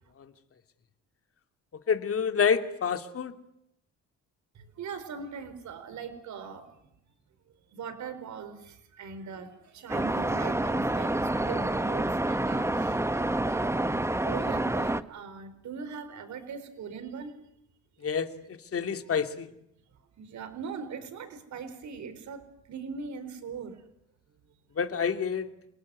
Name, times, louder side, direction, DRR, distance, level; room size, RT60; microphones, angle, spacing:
voice 1, 1.9-3.3 18.0-18.3 18.7-19.5 24.8-25.5, left 6 dB, 50° left, 8 dB, 2.7 m, -27 dB
voice 2, 4.8-6.6 7.7-8.6 9.0-9.5 9.7-11.1 11.4-13.8 14.2-17.4 20.2-22.4 22.7-23.8, right 6 dB, 70° right, 11 dB, 4.7 m, -40 dB
sound 1, 9.9-15.0, right 1 dB, 10° right, 1.2 m, -28 dB
28.5 x 19.5 x 9.6 m, 0.79 s
cardioid pair, 90°, 30 cm